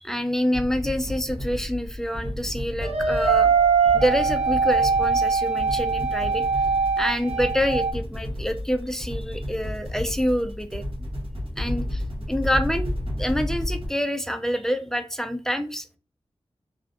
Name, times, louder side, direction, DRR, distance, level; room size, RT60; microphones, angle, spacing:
voice 1, 0.0-3.5 3.8-6.4 7.0-10.8 11.6-12.0 12.3-12.9 13.2-16.0, equal, 5° left, 8 dB, 0.4 m, -27 dB
sound 1, 0.5-13.9, left 1 dB, 55° right, 0.9 m, -32 dB
sound 2, 2.8-7.9, right 5 dB, 80° right, 0.6 m, -22 dB
2.4 x 2.3 x 2.5 m, 0.35 s
wide cardioid pair, 60°, 11 cm